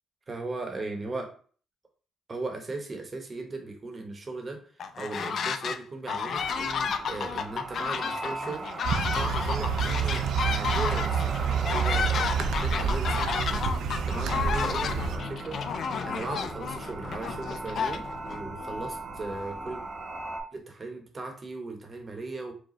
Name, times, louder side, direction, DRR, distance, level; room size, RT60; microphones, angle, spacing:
voice 1, 0.3-1.3 2.3-4.6 5.0-15.6 16.0-19.8 20.5-22.5, right 3 dB, 30° right, 3 dB, 1.0 m, -38 dB
sound 1, 4.8-5.8 6.1-18.4, left 6 dB, 60° left, 0.4 m, -32 dB
sound 2, 6.3-20.4, right 2 dB, 55° right, 0.9 m, -38 dB
sound 3, 8.8-15.2, right 7 dB, 80° right, 0.5 m, -28 dB
4.9 x 2.3 x 3.1 m, 0.43 s
cardioid pair, 90°, 0 cm